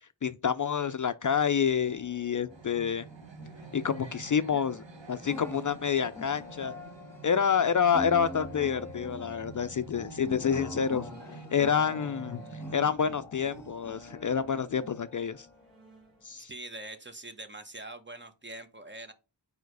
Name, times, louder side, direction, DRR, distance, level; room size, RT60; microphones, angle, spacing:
voice 1, 0.2-3.0 3.7-4.8 5.1-6.7 7.2-11.1 11.5-12.4 12.7-15.5 16.2-16.5, left 7 dB, 45° left, 0.4 m, -28 dB
sound 1, 1.7-16.4, left 2 dB, 5° left, 1.8 m, -45 dB
sound 2, 2.5-12.9, right 4 dB, 85° right, 1.4 m, -48 dB
sound 3, 3.3-4.6 5.8-6.5 8.0-8.6 11.6-12.9 13.3-13.8 14.0-14.5 15.1-15.2 15.5-16.3, right 4 dB, 50° right, 1.8 m, -55 dB
voice 2, 16.5-19.1, right 2 dB, 25° right, 1.0 m, -43 dB
5.1 x 4.7 x 4.6 m
wide cardioid pair, 95°, 43 cm